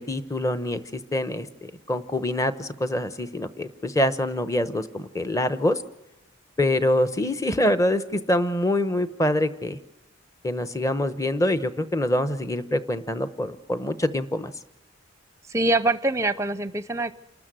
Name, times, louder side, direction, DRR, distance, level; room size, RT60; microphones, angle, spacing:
voice 1, 0.0-5.8 6.6-9.8 10.4-14.5, left 1 dB, 15° left, 12 dB, 0.9 m, -25 dB
voice 2, 15.5-17.1, right 2 dB, 15° right, 14 dB, 0.7 m, -24 dB
28.0 x 13.0 x 7.7 m, 0.95 s
head